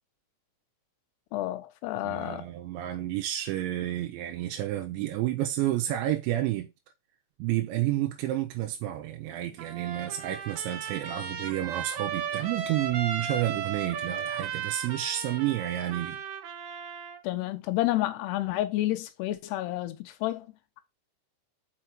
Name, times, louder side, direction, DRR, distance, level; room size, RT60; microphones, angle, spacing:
voice 1, 1.3-2.5 17.2-20.5, left 16 dB, 75° left, 2.7 m, -30 dB
voice 2, 2.0-6.7 7.4-16.2, right 14 dB, 90° right, 3.1 m, -30 dB
Trumpet, 9.6-17.2, right 7 dB, 75° right, 1.8 m, -35 dB
6.0 x 5.7 x 4.4 m
omnidirectional pair, 5.1 m